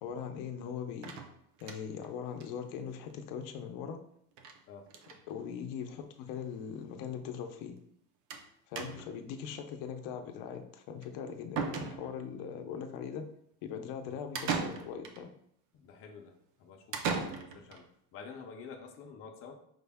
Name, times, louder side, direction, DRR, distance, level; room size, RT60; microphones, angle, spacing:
voice 1, 0.0-1.1 1.6-4.0 5.3-7.8 8.7-13.3 13.6-15.3, left 7 dB, 75° left, 6 dB, 0.6 m, -40 dB
sound 1, 1.0-2.1 2.4-2.5 2.8-2.9 3.1-3.2 4.4-4.6 4.9-5.2 6.1-6.2 6.5-6.6 8.3-8.5 8.8-9.2 11.0-11.1 11.6-12.3 14.4-15.2 16.9-17.8, right 5 dB, 50° right, 0.5 m, -37 dB
voice 2, 8.8-9.1 14.1-14.2 15.7-17.0 17.3-17.9 18.1-19.5, left 5 dB, 35° left, 3 dB, 0.5 m, -49 dB
5.0 x 2.1 x 3.4 m, 0.68 s
cardioid pair, 175°, 40 cm